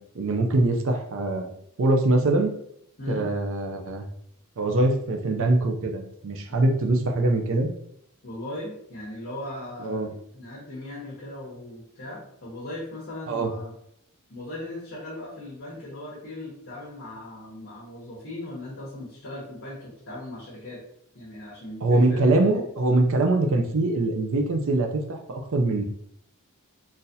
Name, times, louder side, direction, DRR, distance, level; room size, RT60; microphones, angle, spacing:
voice 1, 0.0-2.5 3.1-4.1 4.6-7.7 9.8-10.1 13.3-13.5 21.8-25.8, right 2 dB, 60° right, 4 dB, 0.5 m, -23 dB
voice 2, 8.2-13.7 14.3-20.8 21.1-22.6, left 1 dB, 55° left, -6 dB, 0.9 m, -38 dB
3.9 x 2.5 x 2.7 m, 0.72 s
head